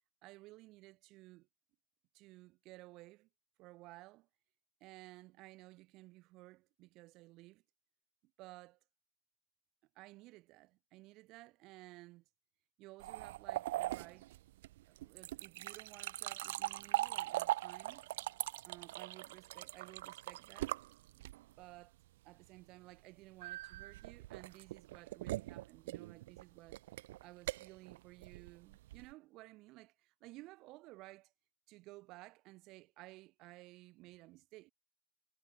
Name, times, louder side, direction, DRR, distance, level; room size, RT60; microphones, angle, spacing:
voice 1, 0.2-1.5 2.1-3.3 3.6-4.3 4.8-7.6 8.2-8.8 9.9-12.2 12.8-14.4 14.9-18.1 18.7-20.8 21.1-21.3 21.5-22.0 22.2-26.8 27.2-31.3 31.7-34.7, right 20 dB, 55° right, 2.1 m, -56 dB
sound 1, 13.0-21.6 23.4-29.1, right 16 dB, 75° right, 0.4 m, -41 dB
hypercardioid pair, 90°, 0 cm